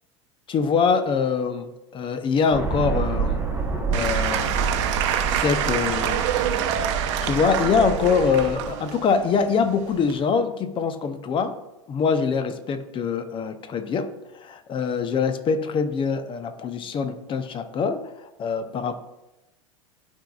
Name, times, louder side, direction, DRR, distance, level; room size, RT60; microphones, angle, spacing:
voice 1, 0.5-3.4 3.9-4.7 5.4-6.2 7.2-11.5 11.9-18.9, left 5 dB, 30° left, 10 dB, 0.7 m, -24 dB
sound 1, 2.5-8.7, right 5 dB, 15° right, 1.1 m, -28 dB
Applause / Crowd, 3.9-10.2, right 9 dB, 60° right, 0.8 m, -27 dB
12.5 x 4.5 x 2.4 m, 0.97 s
hypercardioid pair, 85°, 17 cm